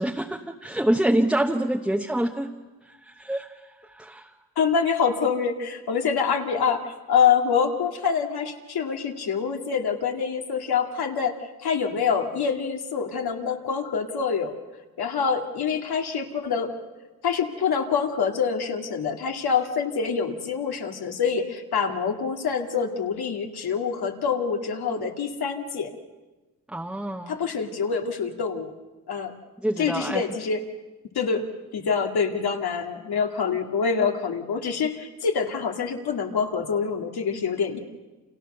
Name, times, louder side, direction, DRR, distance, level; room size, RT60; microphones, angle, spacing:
voice 1, 0.0-2.5 3.1-3.5 3.9-4.3 26.7-27.4 29.6-30.2, right 1 dB, 5° right, 2 dB, 1.0 m, -26 dB
voice 2, 4.6-11.3 11.6-14.5 15.0-16.7 17.2-25.9 27.3-28.7 29.1-29.3 29.8-30.6 31.1-31.4 31.7-37.8, left 6 dB, 85° left, 2 dB, 2.3 m, -26 dB
30.0 x 28.0 x 6.7 m, 1.2 s
wide cardioid pair, 155°, 37 cm